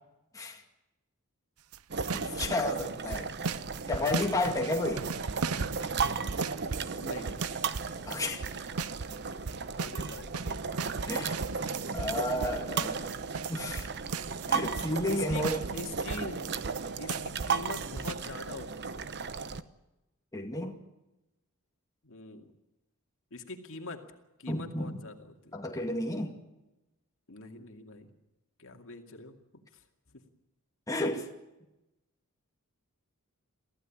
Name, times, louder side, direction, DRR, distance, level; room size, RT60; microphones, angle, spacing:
sound 1, 1.7-2.9 3.1-9.2 9.5-16.8 17.1-18.1, right 5 dB, 80° right, 0.8 m, -37 dB
sound 2, 1.9-19.6, right 5 dB, 50° right, 0.9 m, -35 dB
voice 1, 2.1-3.6 3.9-5.1 8.1-8.4 11.1-11.4 11.9-13.1 13.5-13.9 14.5-15.6 20.3-20.8 24.5-25.0 25.5-26.4 30.9-31.3, left 1 dB, 15° left, 2.2 m, -32 dB
voice 2, 7.0-7.6 9.8-10.7 15.1-16.4 17.0-19.0 22.0-22.5 23.3-24.1 24.4-25.5 27.3-28.1 28.6-29.3 29.7-29.8 30.1-30.2, left 3 dB, 65° left, 2.4 m, -44 dB
24.0 x 15.5 x 8.7 m
head